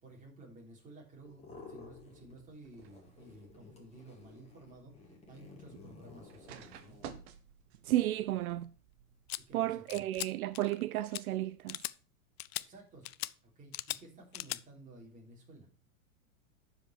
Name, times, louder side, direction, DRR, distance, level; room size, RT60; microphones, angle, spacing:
voice 1, 0.0-7.0 9.5-10.1 12.5-13.1 13.4-15.7, right 2 dB, 20° right, 3.5 m, -54 dB
sound 1, 1.2-2.5 2.7-7.1, left 3 dB, 15° left, 2.3 m, -54 dB
sound 2, 2.5-9.6, right 8 dB, 50° right, 1.2 m, -55 dB
voice 2, 7.9-8.7 9.5-11.8, right 15 dB, 75° right, 0.6 m, -32 dB
sound 3, 9.3-9.4 9.9-10.3 10.5-10.8 11.1-11.2 11.7-11.9 12.4-12.6 13.1-13.3 13.7-14.0 14.3-14.6, left 17 dB, 45° left, 0.4 m, -38 dB
11.5 x 5.1 x 4.7 m
supercardioid pair, 145°, 43 cm